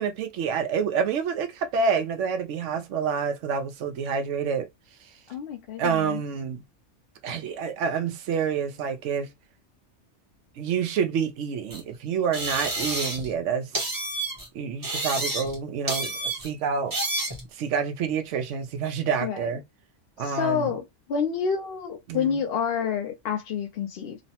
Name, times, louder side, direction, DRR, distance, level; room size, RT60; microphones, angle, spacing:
voice 1, 0.0-4.7 5.8-6.6 7.2-9.3 10.6-13.7 14.5-16.9 17.5-19.6 20.2-20.7 22.1-22.4, right 6 dB, 80° right, 0.9 m, -28 dB
voice 2, 5.3-6.2 19.2-19.5 20.2-24.2, left 7 dB, 65° left, 0.7 m, -28 dB
sound 1, 11.7-11.8 12.3-13.4 13.7-14.5 14.8-15.6 15.9-16.5 16.9-17.4, right 2 dB, 20° right, 0.6 m, -29 dB
3.0 x 2.0 x 2.7 m
omnidirectional pair, 1.2 m